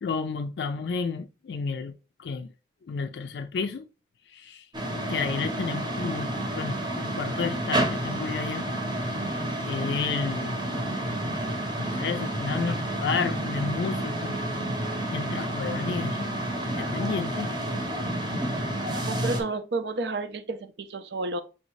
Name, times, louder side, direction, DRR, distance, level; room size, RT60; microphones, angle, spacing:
voice 1, 0.0-1.9 2.2-2.5 2.9-3.9 4.3-4.7 5.1-8.7 9.0-9.2 9.7-10.5 11.8-14.4 15.1-16.3 16.8-17.5, left 5 dB, 65° left, 0.3 m, -31 dB
sound 1, 4.7-19.4, right 1 dB, 25° right, 0.8 m, -30 dB
voice 2, 18.9-21.4, right 3 dB, 65° right, 0.5 m, -31 dB
5.6 x 2.6 x 3.1 m
head